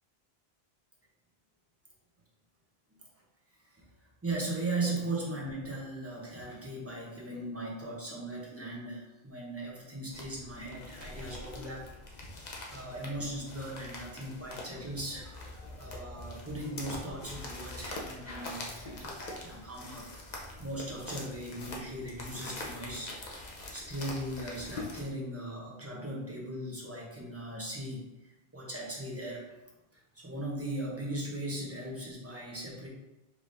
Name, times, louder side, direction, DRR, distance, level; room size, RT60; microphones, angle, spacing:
voice 1, 3.8-11.9 12.3-29.5 29.9-32.9, right 1 dB, 15° right, -3 dB, 0.9 m, -38 dB
sound 1, 10.1-25.1, left 2 dB, 45° left, 0.8 m, -44 dB
4.8 x 3.6 x 2.6 m, 0.98 s
omnidirectional pair, 1.1 m